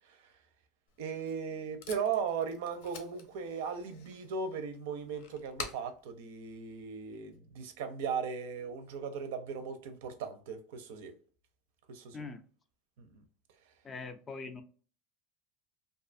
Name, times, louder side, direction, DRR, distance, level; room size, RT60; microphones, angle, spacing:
Packing tape duct tape, 0.9-7.4, left 6 dB, 85° left, 0.6 m, -50 dB
voice 1, 1.0-11.1 11.9-12.2 13.0-13.2, right 6 dB, 85° right, 0.6 m, -37 dB
voice 2, 13.8-14.6, left 4 dB, 20° left, 0.3 m, -42 dB
2.6 x 2.3 x 2.5 m
supercardioid pair, 145°, 0 cm